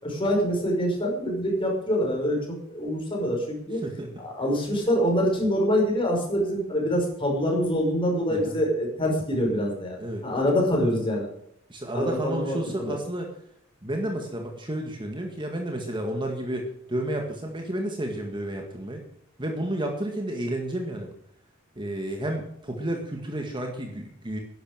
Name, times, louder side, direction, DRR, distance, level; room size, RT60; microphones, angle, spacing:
voice 1, 0.0-3.8 4.2-10.0 10.2-11.3 11.9-13.0, equal, 25° left, 0 dB, 5.6 m, -25 dB
voice 2, 11.7-13.3 13.8-19.0 19.4-21.1 21.8-24.4, right 1 dB, 25° right, 2 dB, 1.9 m, -31 dB
12.0 x 11.0 x 7.5 m, 0.71 s
head